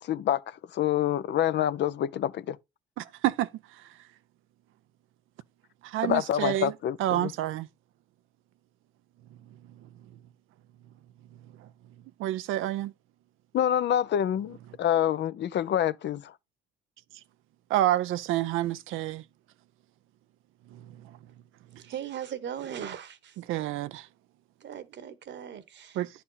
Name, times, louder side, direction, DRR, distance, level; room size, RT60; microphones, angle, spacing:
voice 1, 0.0-2.6 6.0-7.3 13.5-16.3, left 10 dB, 60° left, 0.6 m, -27 dB
voice 2, 3.0-3.5 5.8-6.7 7.0-7.7 12.2-12.9 17.7-19.2 20.7-20.8 23.5-24.1 26.0-26.1, right 14 dB, 90° right, 0.5 m, -28 dB
voice 3, 21.8-23.4 24.6-26.0, right 9 dB, 65° right, 1.2 m, -38 dB
9.9 x 4.2 x 5.6 m
cardioid pair, 90°, 20 cm